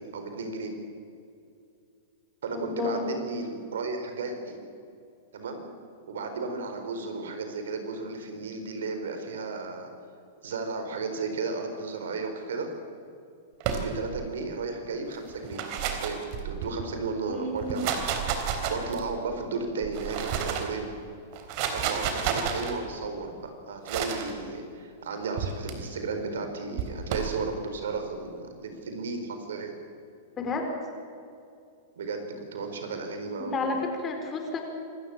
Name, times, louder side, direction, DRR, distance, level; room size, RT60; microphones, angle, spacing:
voice 1, 0.1-0.7 2.4-4.6 5.3-5.7 6.1-9.9 10.4-12.7 13.7-18.0 18.6-20.9 21.7-29.8 32.0-33.7, right 4 dB, 80° right, 6 dB, 4.4 m, -34 dB
voice 2, 2.5-3.1 17.3-17.8 30.4-30.7 33.4-34.6, left 3 dB, 25° left, 3 dB, 4.5 m, -31 dB
sound 1, 13.6-14.3 15.3-16.8 17.6-19.2 19.8-20.8 21.3-22.7 23.9-24.3 25.4-25.7 26.8-27.4, right 7 dB, 50° right, 3.6 m, -31 dB
27.0 x 14.0 x 8.8 m, 2.6 s
hypercardioid pair, 130°, 0 cm